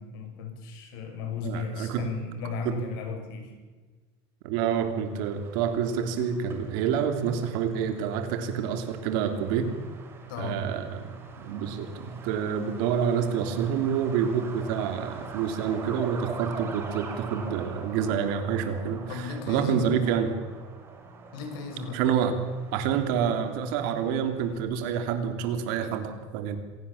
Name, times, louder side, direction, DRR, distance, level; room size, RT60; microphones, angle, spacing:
voice 1, 0.0-3.6 10.3-10.6 19.1-19.9 21.3-22.0, left 5 dB, 75° left, 5 dB, 6.5 m, -35 dB
voice 2, 1.4-2.0 2.6-2.8 4.4-9.7 10.4-11.1 11.4-19.0 19.5-20.4 21.9-22.4 22.7-26.6, right 7 dB, 60° right, 8 dB, 3.1 m, -27 dB
Truck, 4.6-24.6, right 4 dB, 20° right, 3.0 m, -44 dB
26.0 x 17.5 x 7.2 m, 1.3 s
cardioid pair, 175°, 12 cm